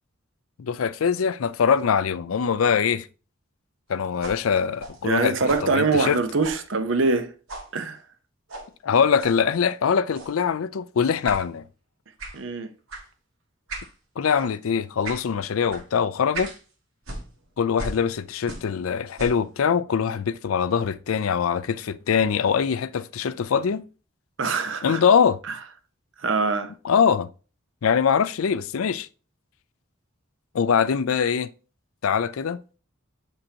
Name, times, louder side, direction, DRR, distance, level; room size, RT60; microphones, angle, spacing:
voice 1, 0.6-3.1 3.9-6.2 8.8-11.6 14.2-16.5 17.6-23.8 24.8-25.4 26.8-27.3 27.8-29.1 30.5-31.5 32.0-32.6, left 6 dB, 90° left, 0.4 m, -23 dB
sound 1, 4.2-7.2 7.5-7.7 8.5-8.7 9.2-9.4 10.1-10.4 11.2-11.4 12.2-12.4 12.9-13.1 13.7-13.9 14.3-14.5 15.0-15.3 15.7-15.8 16.3-16.6 17.0-18.8 19.1-19.5, right 2 dB, 90° right, 1.6 m, -38 dB
voice 2, 5.0-7.3 7.7-8.0 12.3-12.7 24.4-25.0 25.5-25.6 26.2-26.7, right 4 dB, 65° right, 0.8 m, -23 dB
7.3 x 5.3 x 2.8 m
head